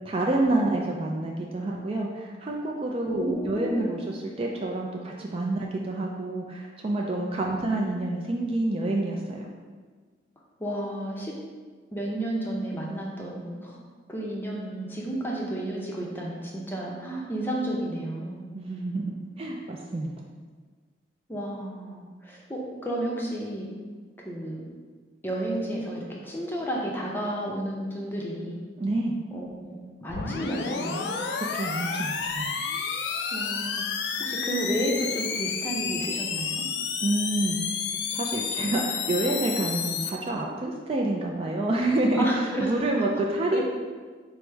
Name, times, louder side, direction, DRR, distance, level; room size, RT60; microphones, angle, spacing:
voice 1, 0.1-9.4 18.5-20.1 28.8-29.1 31.4-32.5 37.0-37.6 38.1-43.6, right 2 dB, 30° right, -1 dB, 0.3 m, -28 dB
voice 2, 3.0-3.9 7.7-7.9 10.6-11.3 11.9-13.8 14.1-18.4 21.3-23.7 24.2-24.6 25.2-28.6 29.3-31.2 33.3-36.6 42.2-42.7 42.9-43.0 43.5-43.6, right 1 dB, 10° left, -3 dB, 0.6 m, -32 dB
sound 1, 30.1-40.1, left 6 dB, 65° left, 0.3 m, -30 dB
4.8 x 2.0 x 4.5 m, 1.5 s
head